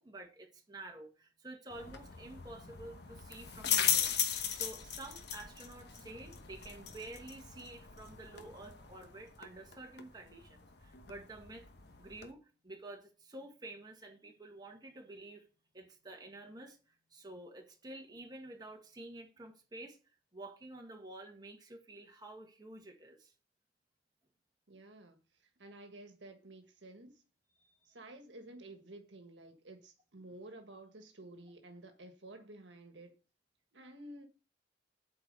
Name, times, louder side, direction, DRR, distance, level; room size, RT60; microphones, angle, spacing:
voice 1, 0.0-11.7 12.0-12.4 12.6-15.5 15.7-16.8 17.1-20.0 20.3-23.3 27.6-27.8, right 2 dB, 20° right, 1.8 m, -50 dB
sound 1, 1.7-12.3, left 8 dB, 65° left, 1.2 m, -38 dB
voice 2, 24.7-25.2 25.6-27.2 27.8-33.2 33.7-34.3, right 1 dB, 80° right, 1.5 m, -52 dB
8.4 x 4.6 x 6.8 m
head